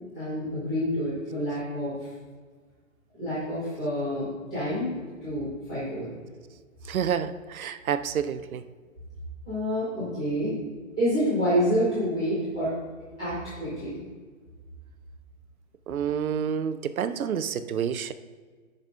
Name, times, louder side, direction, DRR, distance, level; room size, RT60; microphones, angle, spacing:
voice 1, 0.1-2.1 3.2-4.9 5.2-6.1 9.4-10.6 11.0-12.7 13.2-14.0, equal, 5° left, -14 dB, 0.6 m, -28 dB
voice 2, 6.9-8.6 15.9-18.1, right 8 dB, 80° right, 12 dB, 0.6 m, -29 dB
15.5 x 5.4 x 2.5 m, 1.5 s
hypercardioid pair, 170°, 42 cm